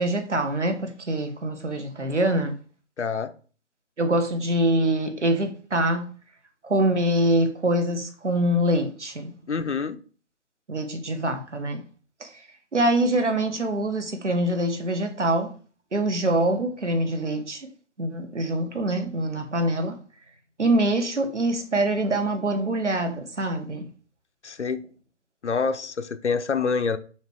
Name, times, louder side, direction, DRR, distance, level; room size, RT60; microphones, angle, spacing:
voice 1, 0.0-2.5 4.0-6.1 6.6-9.3 10.7-11.8 12.2-12.3 12.7-15.5 15.9-17.7 18.0-20.0 20.6-23.9, right 1 dB, 75° right, 1.5 m, -24 dB
voice 2, 3.0-3.3 9.5-10.0 24.4-24.9 25.4-27.0, left 5 dB, 70° left, 0.7 m, -26 dB
6.4 x 3.2 x 4.8 m
figure-of-eight pair, 140°, 36 cm